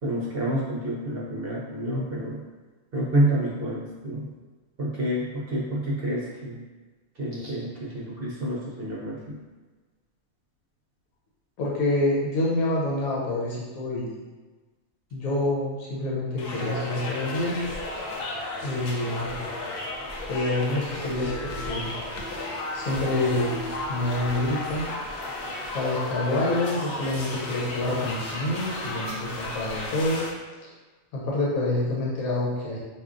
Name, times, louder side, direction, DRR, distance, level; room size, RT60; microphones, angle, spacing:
voice 1, 0.0-2.4 2.9-4.3 4.8-6.6 7.2-9.4, right 1 dB, 50° right, -5 dB, 0.8 m, -28 dB
voice 2, 11.6-14.1 15.1-17.6 18.6-19.4 20.3-21.9 22.7-23.6 23.9-24.9 25.7-30.2 30.6-30.7 31.1-32.8, left 2 dB, 85° left, -5 dB, 1.2 m, -27 dB
sound 1, 16.4-30.3, left 2 dB, 60° left, 0.6 m, -34 dB
4.6 x 2.7 x 2.4 m, 1.3 s
omnidirectional pair, 1.5 m